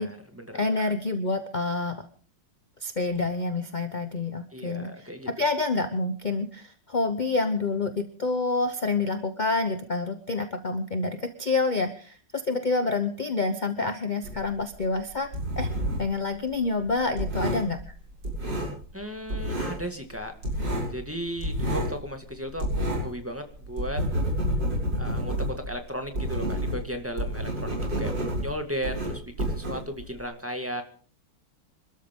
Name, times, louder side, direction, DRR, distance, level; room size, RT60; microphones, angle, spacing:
voice 1, 0.0-0.9 4.5-5.3 18.9-20.3 20.9-24.0 25.0-25.3 25.7-30.8, equal, 5° right, 4 dB, 1.7 m, -35 dB
voice 2, 0.5-1.9 2.8-5.1 5.4-15.3 15.6-15.7 16.0-17.9, left 3 dB, 40° left, 7 dB, 0.7 m, -28 dB
sound 1, 14.2-16.2 16.4-19.0 19.3-19.9 20.1-23.2 23.5-30.2, equal, 50° right, 7.7 m, -29 dB
27.0 x 13.0 x 3.7 m, 0.41 s
omnidirectional pair, 2.4 m